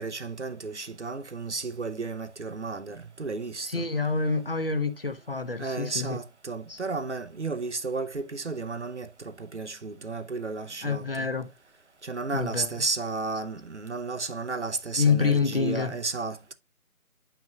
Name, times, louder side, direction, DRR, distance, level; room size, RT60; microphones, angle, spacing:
voice 1, 0.0-3.9 5.6-11.3 12.0-16.5, right 3 dB, 55° right, 0.7 m, -33 dB
voice 2, 3.7-6.2 6.7-6.8 10.8-11.5 12.3-12.7 15.0-15.9, left 5 dB, 40° left, 0.9 m, -27 dB
9.3 x 5.8 x 2.3 m
figure-of-eight pair, 160°, 42 cm